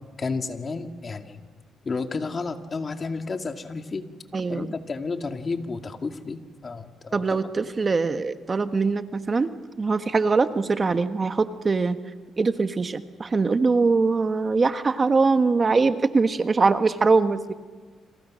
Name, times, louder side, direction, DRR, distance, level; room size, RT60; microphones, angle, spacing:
voice 1, 0.2-1.4 1.8-4.1 4.5-7.4, left 4 dB, 35° left, 6 dB, 2.3 m, -31 dB
voice 2, 4.3-4.7 7.1-9.5 9.8-12.0 12.4-17.5, right 4 dB, 30° right, 9 dB, 1.3 m, -22 dB
29.5 x 27.0 x 6.4 m, 1.4 s
cardioid pair, 90°, 0 cm